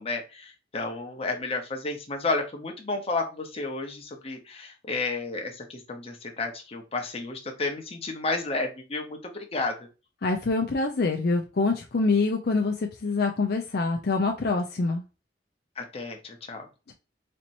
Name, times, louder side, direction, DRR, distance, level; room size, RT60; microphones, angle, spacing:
voice 1, 0.0-9.9 15.8-16.7, left 3 dB, 35° left, 3 dB, 0.9 m, -32 dB
voice 2, 10.2-15.0 16.9-17.0, left 3 dB, 60° left, 2 dB, 0.5 m, -25 dB
4.3 x 2.9 x 2.5 m, 0.30 s
head